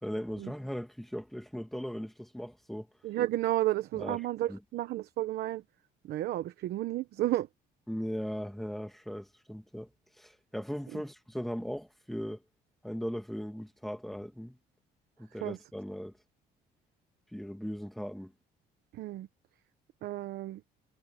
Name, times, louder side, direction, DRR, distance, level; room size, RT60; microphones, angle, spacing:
voice 1, 0.0-2.9 3.9-4.2 4.5-4.6 7.9-9.9 10.2-12.4 12.8-14.6 15.2-16.1 17.3-18.3, equal, ahead, 2.2 m, -38 dB
voice 2, 3.0-5.6 6.0-7.5 10.9-11.0 15.4-15.6 18.9-19.3 20.0-20.6, right 14 dB, 70° right, 1.1 m, -32 dB
cardioid pair, 110°, 17 cm